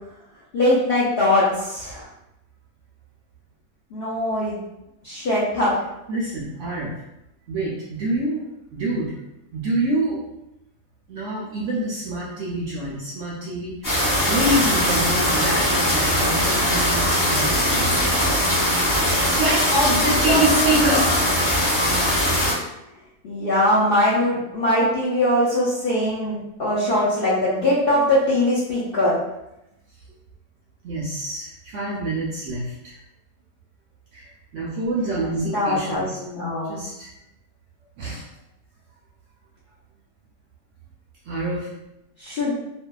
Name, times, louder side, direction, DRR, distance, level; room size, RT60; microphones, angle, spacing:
voice 1, 0.5-2.1 3.9-4.6 5.0-5.7 20.0-21.0 23.2-29.2 35.5-36.7 42.2-42.5, left 1 dB, 65° left, -8 dB, 0.5 m, -21 dB
voice 2, 6.1-6.9 7.5-9.1 9.5-10.2 11.1-18.0 19.4-21.1 30.8-33.0 34.1-36.2 36.6-37.1 38.0-38.2 41.2-41.7, right 1 dB, 70° right, -5 dB, 0.7 m, -26 dB
sound 1, 13.8-22.5, equal, 25° left, 1.1 m, -20 dB
2.6 x 2.3 x 2.2 m, 0.88 s
omnidirectional pair, 1.7 m